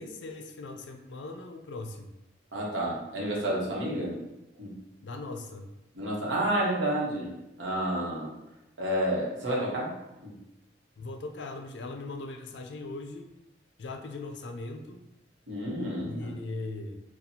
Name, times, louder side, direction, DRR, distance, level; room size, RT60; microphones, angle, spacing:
voice 1, 0.0-2.1 5.0-5.7 11.0-13.3 13.8-15.0 16.0-17.0, left 2 dB, 75° left, 5 dB, 0.4 m, -39 dB
voice 2, 2.5-4.2 4.6-4.7 5.9-7.3 7.6-8.3 8.8-9.9 10.2-10.3 15.5-16.3, right 1 dB, 85° right, -4 dB, 1.0 m, -30 dB
4.2 x 2.3 x 2.7 m, 0.92 s
head